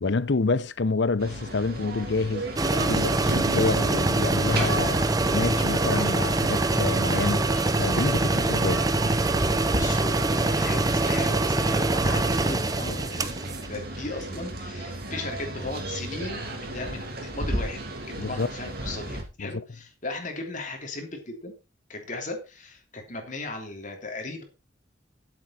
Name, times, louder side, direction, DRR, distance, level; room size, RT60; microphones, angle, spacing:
voice 1, 0.0-2.5 2.7-7.4 7.8-8.8 18.2-18.5 19.4-19.5, left 3 dB, 70° left, 0.7 m, -28 dB
sound 1, 1.2-19.2, right 1 dB, 55° right, 3.1 m, -35 dB
sound 2, 2.6-13.7, right 2 dB, 20° right, 0.7 m, -24 dB
Fireworks, 3.3-7.1, right 1 dB, 70° right, 2.2 m, -36 dB
voice 2, 9.7-13.3 13.7-16.5 16.7-17.8 18.1-21.5 21.9-24.4, left 2 dB, 45° left, 3.0 m, -36 dB
12.5 x 7.8 x 4.3 m
head